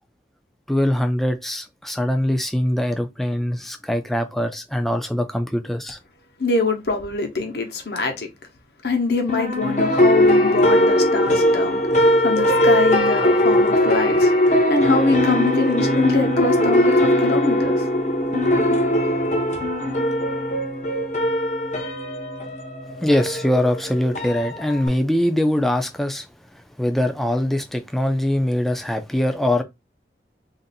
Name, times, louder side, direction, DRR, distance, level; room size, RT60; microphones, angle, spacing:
voice 1, 0.7-6.0 23.0-26.3 26.8-29.6, left 1 dB, ahead, 0.3 m, -22 dB
voice 2, 6.4-8.3 8.8-17.9, left 4 dB, 65° left, 0.9 m, -24 dB
sound 1, 9.3-24.9, equal, 40° left, 0.6 m, -19 dB
2.6 x 2.5 x 4.0 m
head